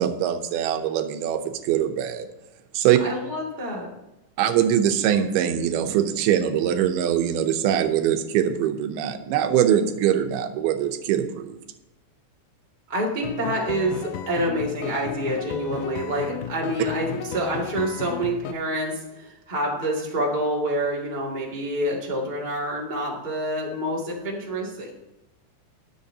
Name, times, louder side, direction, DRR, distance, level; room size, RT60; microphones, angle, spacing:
voice 1, 0.0-2.3 2.7-3.0 4.4-11.6, right 10 dB, 90° right, 7 dB, 2.8 m, -22 dB
voice 2, 3.0-3.9 12.9-24.9, right 1 dB, 15° right, -3 dB, 1.7 m, -27 dB
sound 1, 13.2-18.5, left 9 dB, 80° left, 2.4 m, -34 dB
21.0 x 7.3 x 2.8 m, 0.97 s
omnidirectional pair, 4.3 m